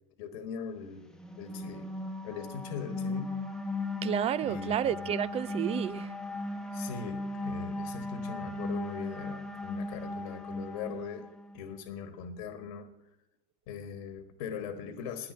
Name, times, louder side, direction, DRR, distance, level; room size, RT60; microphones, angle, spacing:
voice 1, 0.2-1.1 1.4-1.9 2.2-3.4 4.4-4.8 6.7-13.1 13.7-15.3, left 7 dB, 65° left, 1.4 m, -40 dB
sound 1, 1.1-11.6, left 1 dB, 5° left, 1.1 m, -37 dB
voice 2, 4.0-6.1, right 10 dB, 30° right, 0.4 m, -31 dB
10.0 x 9.8 x 9.9 m
hypercardioid pair, 85°, 20 cm